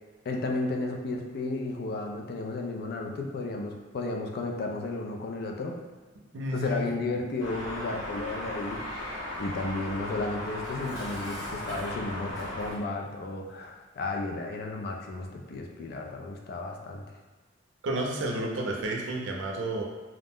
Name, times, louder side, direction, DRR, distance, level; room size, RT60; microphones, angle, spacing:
voice 1, 0.3-5.7 6.5-9.1 9.4-17.0, left 2 dB, 55° left, 2 dB, 0.4 m, -33 dB
voice 2, 6.3-6.9 17.8-19.8, right 1 dB, 70° right, 0 dB, 0.5 m, -31 dB
sound 1, 7.4-12.7, left 1 dB, 90° left, 0.7 m, -37 dB
Dishes pots and pans, 10.5-12.9, equal, 20° left, 0.9 m, -45 dB
2.4 x 2.1 x 3.5 m, 1.3 s
head